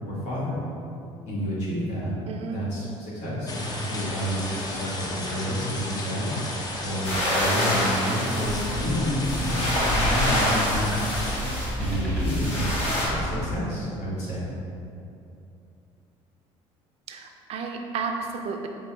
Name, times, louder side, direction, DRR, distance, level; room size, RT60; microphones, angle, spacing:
voice 1, 0.1-0.6 1.2-2.1 2.5-6.4 6.8-11.1 11.8-12.8 13.0-14.5, equal, 75° left, -7 dB, 1.4 m, -29 dB
voice 2, 2.3-2.6 17.1-18.7, right 5 dB, 60° right, 3 dB, 0.4 m, -32 dB
sound 1, 3.5-11.4, left 2 dB, 35° left, 0.6 m, -34 dB
sound 2, 7.0-13.1, left 1 dB, 55° left, 1.3 m, -27 dB
sound 3, 8.4-13.6, equal, 10° left, 1.0 m, -30 dB
5.4 x 2.3 x 3.3 m, 2.6 s
cardioid pair, 100°, 12 cm